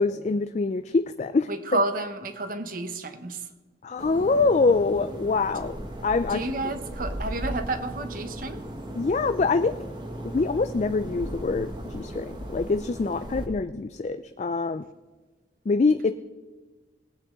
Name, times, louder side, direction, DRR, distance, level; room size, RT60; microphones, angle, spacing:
voice 1, 0.0-1.8 3.8-5.8 6.0-6.5 9.0-9.7 10.3-14.8 15.7-16.1, left 3 dB, 40° left, 10 dB, 0.4 m, -25 dB
voice 2, 1.5-3.5 6.3-8.6, right 2 dB, 50° right, 8 dB, 1.1 m, -30 dB
sound 1, 4.0-13.5, right 1 dB, 25° right, 1.4 m, -37 dB
20.0 x 8.6 x 3.8 m, 1.3 s
head